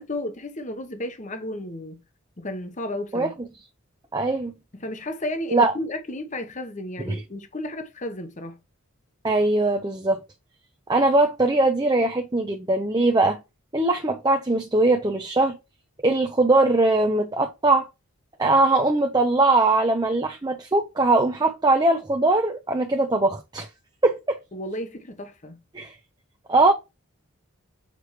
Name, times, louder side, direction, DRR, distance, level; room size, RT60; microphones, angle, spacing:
voice 1, 0.0-2.0 2.4-3.3 4.7-8.6 24.5-25.6, left 1 dB, 35° left, 1.0 m, -33 dB
voice 2, 4.1-4.5 5.5-5.7 7.1-7.2 9.2-10.2 10.9-13.4 13.7-15.6 16.0-17.9 18.4-23.7 24.0-24.2 25.7-25.9 26.5-26.7, right 2 dB, 20° right, 0.6 m, -21 dB
6.7 x 4.7 x 3.1 m
head